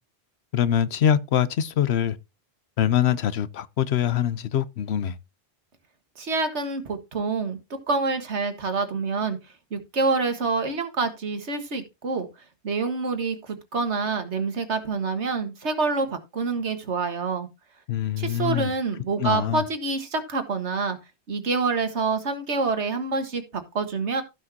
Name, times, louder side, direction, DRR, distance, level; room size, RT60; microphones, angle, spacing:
voice 1, 0.5-2.2 2.8-5.2 17.9-18.7 19.2-19.6, left 9 dB, 70° left, 1.0 m, -24 dB
voice 2, 6.2-7.6 7.9-9.4 9.7-12.3 12.6-17.5 18.2-21.0 21.3-24.2, right 4 dB, 80° right, 1.8 m, -27 dB
15.5 x 6.1 x 2.8 m
omnidirectional pair, 1.1 m